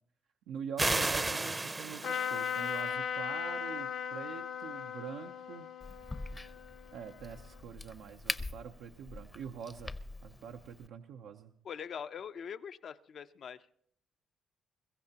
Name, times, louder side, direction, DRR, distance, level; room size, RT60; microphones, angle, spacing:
voice 1, 0.5-5.7 6.9-9.9 10.2-11.5, right 7 dB, 90° right, 3 dB, 0.7 m, -45 dB
sound 1, 0.8-2.8, right 2 dB, 20° right, 0.6 m, -33 dB
Trumpet, 2.0-7.5, left 7 dB, 75° left, 1.0 m, -38 dB
Crack, 5.8-10.9, left 2 dB, 20° left, 0.7 m, -43 dB
voice 2, 11.6-13.7, left 7 dB, 60° left, 11 dB, 0.6 m, -43 dB
22.5 x 14.5 x 2.9 m, 0.65 s
cardioid pair, 90°, 0 cm